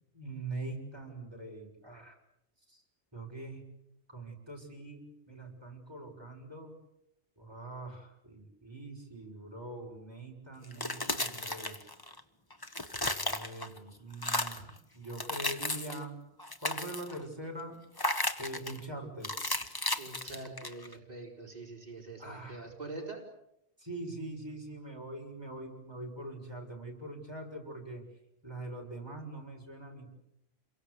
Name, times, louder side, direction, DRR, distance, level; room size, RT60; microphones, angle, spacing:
voice 1, 0.1-2.2 2.7-2.8 3.1-3.6 4.1-6.7 7.4-11.8 13.0-16.1 16.6-17.7 18.4-19.3 22.2-22.6 23.8-28.0 28.4-30.1, right 2 dB, 25° right, 0 dB, 6.3 m, -43 dB
sound 1, 10.6-12.2 12.5-13.8 14.1-14.7 15.1-16.1 16.4-17.2 18.0-18.8 19.2-20.9, left 2 dB, 20° left, 1.3 m, -34 dB
voice 2, 20.0-23.3, right 3 dB, 40° right, -1 dB, 4.6 m, -44 dB
28.5 x 23.0 x 8.2 m, 0.81 s
omnidirectional pair, 1.1 m